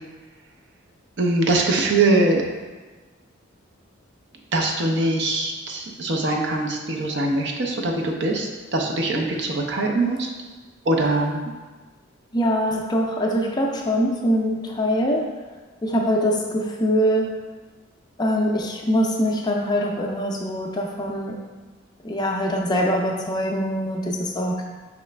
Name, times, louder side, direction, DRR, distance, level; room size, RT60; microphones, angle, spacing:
voice 1, 1.2-2.4 4.5-10.3 10.9-11.4, right 2 dB, 60° right, 1 dB, 0.5 m, -22 dB
voice 2, 12.3-15.2 15.8-17.3 18.2-21.3 22.0-24.6, equal, 20° left, 0 dB, 0.4 m, -23 dB
4.8 x 3.1 x 3.3 m, 1.3 s
head